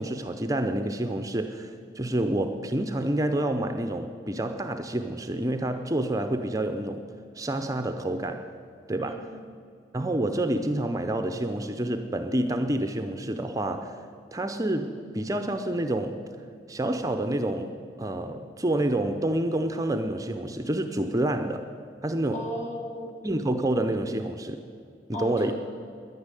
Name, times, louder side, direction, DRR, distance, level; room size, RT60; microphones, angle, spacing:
voice 1, 0.0-7.0 7.4-8.5 8.9-9.3 9.9-14.0 14.3-16.2 16.7-21.6 22.0-22.4 23.2-24.6 25.1-25.5, right 1 dB, 20° right, 7 dB, 0.6 m, -28 dB
voice 2, 9.0-9.4 22.3-23.1 25.1-25.5, left 1 dB, 40° left, -1 dB, 2.7 m, -35 dB
11.0 x 10.0 x 9.7 m, 2.3 s
head